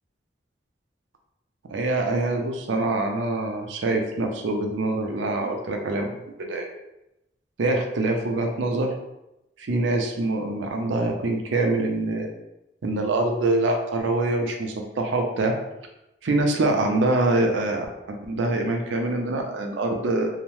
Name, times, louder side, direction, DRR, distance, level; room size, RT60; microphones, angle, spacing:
voice 1, 1.7-6.7 7.6-8.9 9.6-12.3 12.8-15.5 16.2-20.3, right 2 dB, 90° right, 3 dB, 0.5 m, -25 dB
2.7 x 2.1 x 3.0 m, 0.89 s
head